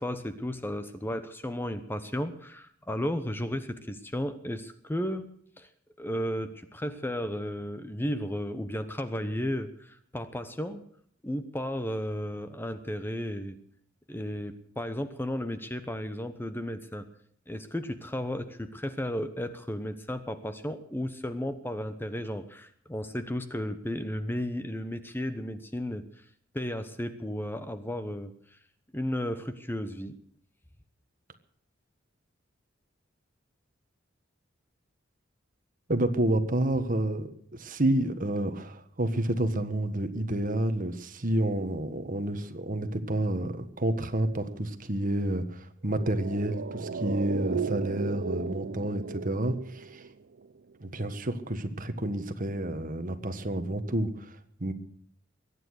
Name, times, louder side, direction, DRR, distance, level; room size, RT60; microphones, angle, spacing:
voice 1, 0.0-5.3 5.6-5.7 6.0-10.8 11.2-13.6 14.1-17.1 17.5-26.0 26.5-28.3 28.9-30.1, left 1 dB, 10° left, 11 dB, 1.0 m, -34 dB
voice 2, 35.9-50.0 50.8-54.7, right 1 dB, 45° right, 9 dB, 1.5 m, -29 dB
sound 1, 45.9-50.5 50.7-50.8, right 5 dB, 60° right, 0.6 m, -35 dB
23.0 x 9.8 x 6.4 m, 0.62 s
head